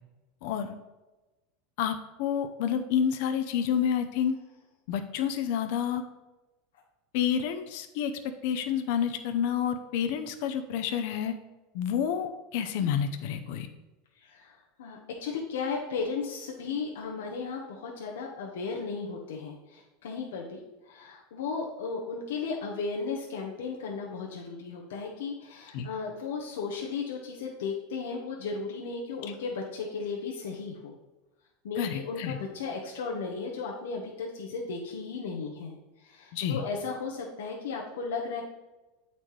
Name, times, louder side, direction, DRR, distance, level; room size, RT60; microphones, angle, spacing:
voice 1, 0.4-0.7 1.8-4.3 4.9-6.0 7.1-8.1 8.4-11.3 11.7-13.7 25.7-25.9 31.8-32.4 36.3-36.6, left 8 dB, 65° left, 7 dB, 0.5 m, -29 dB
voice 2, 14.2-30.9 31.6-38.4, left 4 dB, 90° left, -1 dB, 0.8 m, -35 dB
8.4 x 4.1 x 3.1 m, 1.1 s
supercardioid pair, 130°, 0 cm